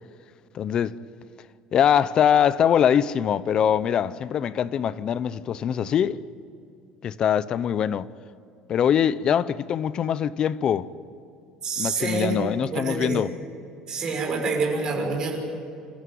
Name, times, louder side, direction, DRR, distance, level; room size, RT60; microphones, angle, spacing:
voice 1, 0.5-1.0 1.7-6.2 7.0-8.1 8.7-10.9 11.8-13.3, left 9 dB, 35° left, 0.6 m, -23 dB
voice 2, 11.6-12.4 12.7-13.2 13.9-15.4, right 4 dB, 30° right, 6.1 m, -27 dB
28.0 x 14.5 x 9.4 m
cardioid pair, 150°, 2 cm